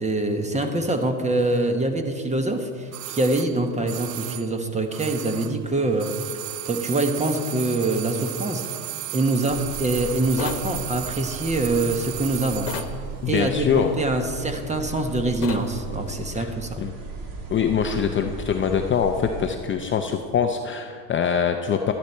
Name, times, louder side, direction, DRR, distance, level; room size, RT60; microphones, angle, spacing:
voice 1, 0.0-6.2 6.6-8.6 9.1-12.7 13.2-16.8, right 2 dB, 15° right, 6 dB, 1.1 m, -24 dB
sound 1, 2.9-5.7 5.9-13.0 13.2-13.3, right 15 dB, 85° right, 0.7 m, -35 dB
sound 2, 9.5-19.5, right 3 dB, 40° right, 2.3 m, -37 dB
sound 3, 10.4-10.7 12.7-13.0 15.4-15.7, left 10 dB, 70° left, 1.2 m, -31 dB
voice 2, 13.2-13.9 16.4-16.5 16.8-16.9 17.5-21.9, left 7 dB, 25° left, 4 dB, 0.6 m, -23 dB
12.5 x 11.5 x 4.4 m, 2.2 s
supercardioid pair, 110°, 48 cm